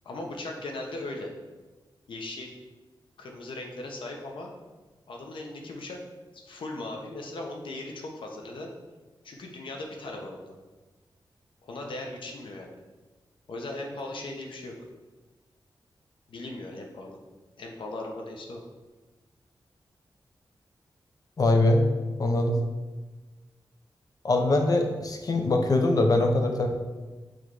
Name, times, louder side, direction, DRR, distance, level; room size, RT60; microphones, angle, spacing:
voice 1, 0.0-1.3 2.1-2.5 3.2-4.5 5.1-6.0 6.3-8.7 9.2-10.5 11.6-12.7 13.5-14.8 16.3-17.2 17.6-18.6, left 2 dB, 80° left, 1 dB, 1.0 m, -38 dB
voice 2, 21.4-21.9 22.2-22.6 24.2-26.7, left 2 dB, 45° left, 4 dB, 0.8 m, -22 dB
6.3 x 3.3 x 4.8 m, 1.3 s
wide cardioid pair, 135°, 8 cm